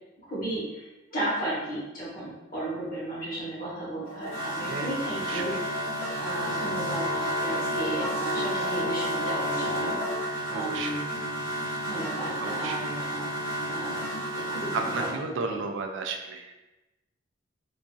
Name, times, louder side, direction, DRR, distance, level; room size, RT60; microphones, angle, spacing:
voice 1, 0.2-5.5 6.2-11.0 11.8-13.3 13.7-14.2 14.5-15.1 15.5-15.6, right 1 dB, 45° left, -7 dB, 1.3 m, -34 dB
sound 1, 4.0-15.1, equal, 85° left, 1.2 m, -31 dB
voice 2, 10.5-11.0 12.4-12.8 14.7-16.5, right 4 dB, 70° right, 4 dB, 0.4 m, -33 dB
3.8 x 2.6 x 2.3 m, 1.1 s
head